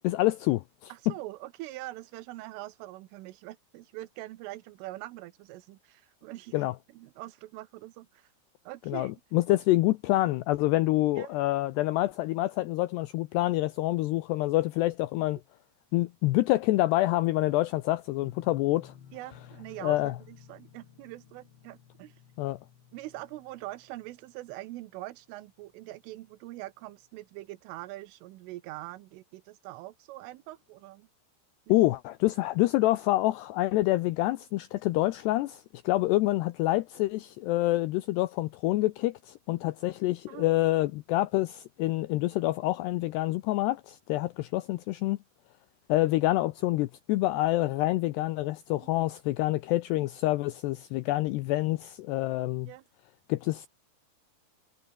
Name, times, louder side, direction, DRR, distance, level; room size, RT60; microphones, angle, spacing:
voice 1, 0.0-0.9 6.5-6.7 8.9-15.4 15.9-18.9 19.8-20.1 22.4-22.6 31.7-45.2 45.9-52.7 53.3-53.7, left 17 dB, 90° left, 2.3 m, -27 dB
voice 2, 0.9-6.7 6.9-8.3 8.7-9.1 11.2-11.4 19.1-22.2 22.9-31.1 31.7-31.8 40.3-40.5 48.8-48.9 52.7-52.9, right 17 dB, 80° right, 3.6 m, -43 dB
sound 1, 18.2-25.0 25.3-25.9 26.3-26.4, left 8 dB, 65° left, 5.6 m, -54 dB
omnidirectional pair, 5.8 m